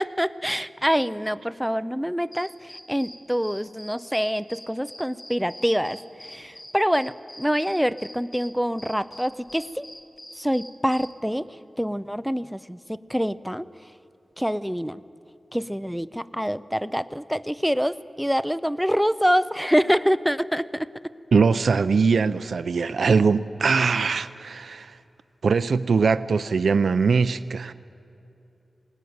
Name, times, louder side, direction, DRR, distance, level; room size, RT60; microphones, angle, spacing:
voice 1, 0.0-9.9 10.4-11.5 11.8-13.7 14.4-15.0 15.5-20.9, equal, ahead, 14 dB, 0.5 m, -25 dB
sound 1, 2.3-11.1, left 1 dB, 25° left, 1.6 m, -44 dB
voice 2, 21.3-24.9 25.4-27.7, right 5 dB, 75° right, 12 dB, 0.5 m, -21 dB
19.5 x 19.0 x 9.5 m, 2.8 s
wide cardioid pair, 115°, 0 cm